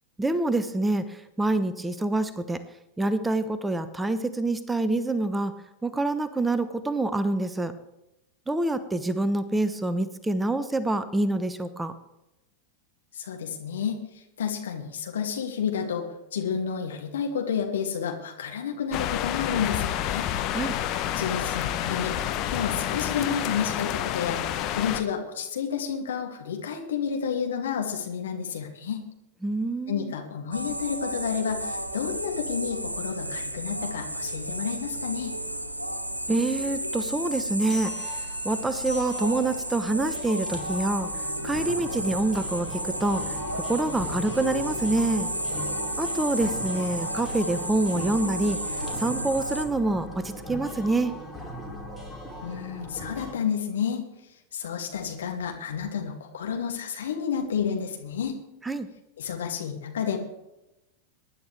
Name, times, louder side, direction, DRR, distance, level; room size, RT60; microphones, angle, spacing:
voice 1, 0.2-2.6 3.0-5.5 5.8-7.7 8.5-12.0 20.5-20.8 29.4-30.1 36.3-45.3 46.0-48.6 49.0-51.1 58.6-58.9, right 2 dB, 10° right, 13 dB, 0.8 m, -26 dB
voice 2, 13.1-16.1 16.3-20.3 21.2-22.1 22.5-29.0 29.9-35.3 52.4-54.0 54.5-58.4 59.2-60.2, left 7 dB, 65° left, 2 dB, 2.4 m, -30 dB
sound 1, 18.9-25.0, left 11 dB, 40° left, 1.1 m, -29 dB
sound 2, 30.5-49.7, right 1 dB, 85° right, 1.4 m, -32 dB
sound 3, 37.7-53.3, left 1 dB, 10° left, 2.8 m, -39 dB
23.5 x 10.5 x 3.4 m, 0.92 s
figure-of-eight pair, 90°, 0 cm